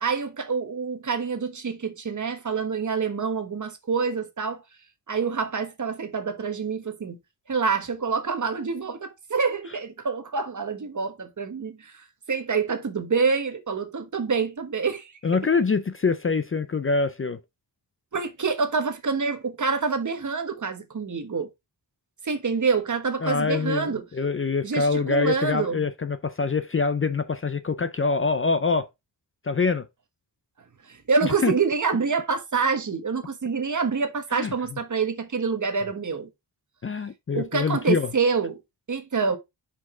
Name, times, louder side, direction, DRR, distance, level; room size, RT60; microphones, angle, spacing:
voice 1, 0.0-4.6 5.1-7.2 7.5-15.2 18.1-21.5 22.2-24.0 24.6-25.8 30.9-36.3 37.3-38.6 38.9-39.4, right 5 dB, 45° right, 1.3 m, -26 dB
voice 2, 15.2-17.4 23.2-28.9 29.4-29.9 31.2-31.5 34.4-34.5 36.8-38.1, left 4 dB, 30° left, 0.4 m, -25 dB
6.1 x 5.0 x 3.8 m
wide cardioid pair, 180°, 42 cm